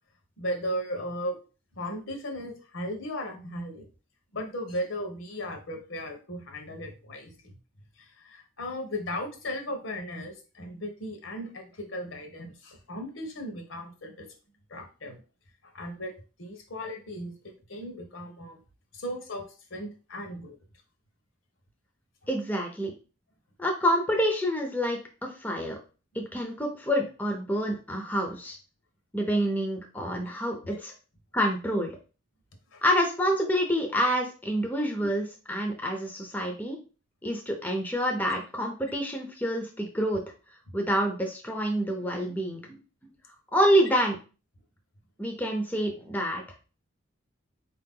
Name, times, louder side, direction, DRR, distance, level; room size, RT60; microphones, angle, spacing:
voice 1, 0.4-1.4 1.8-3.9 4.3-7.3 8.0-14.3 14.7-15.2 15.6-16.1 16.4-18.6 18.9-19.4 19.7-20.6 30.2-30.4 30.7-30.8 32.7-32.8 35.0-35.1 40.7-40.8, equal, 75° left, 4 dB, 1.1 m, -36 dB
voice 2, 22.3-22.9 23.6-25.8 26.1-28.6 29.1-30.9 31.3-31.9 32.8-36.8 37.2-40.2 40.7-42.8 43.5-44.2 45.2-46.4, equal, 10° left, 2 dB, 0.6 m, -27 dB
4.5 x 2.9 x 3.7 m, 0.35 s
head